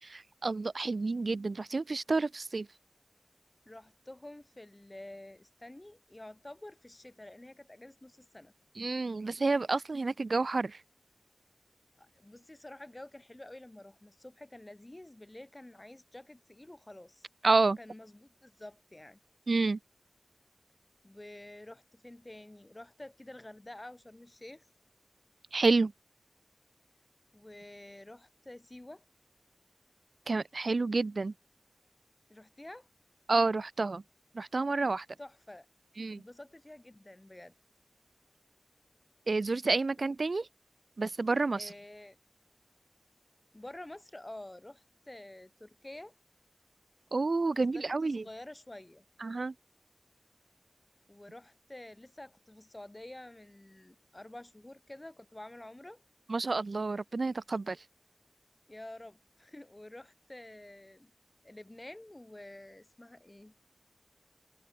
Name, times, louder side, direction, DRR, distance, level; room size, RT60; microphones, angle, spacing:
voice 1, 0.0-2.7 8.8-10.8 17.4-17.8 19.5-19.8 25.5-25.9 30.3-31.3 33.3-34.0 34.3-35.1 36.0-36.2 39.3-40.5 41.0-41.7 47.1-48.2 49.2-49.5 56.3-57.8, right 3 dB, 85° right, 2.0 m, -29 dB
voice 2, 3.6-8.5 12.0-17.3 17.8-19.2 21.0-24.7 27.3-29.0 32.3-32.9 35.2-35.7 36.1-37.5 41.5-42.2 43.5-46.1 47.5-49.0 51.1-56.0 58.7-61.1 61.4-63.5, left 1 dB, 30° left, 6.6 m, -49 dB
wide cardioid pair, 60°, 0 cm